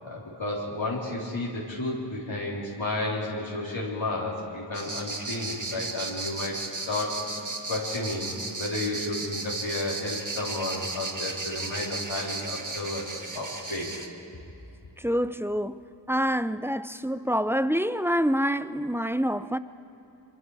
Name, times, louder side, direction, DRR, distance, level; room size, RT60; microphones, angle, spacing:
voice 1, 0.0-7.2 7.7-8.3 8.6-13.0 13.3-13.9, left 2 dB, 80° left, 3.6 m, -32 dB
sound 1, 4.7-14.1, right 3 dB, 40° right, 1.6 m, -35 dB
voice 2, 15.0-15.8 16.1-19.6, equal, 5° right, 0.5 m, -26 dB
25.0 x 24.0 x 4.8 m
wide cardioid pair, 50°, 46 cm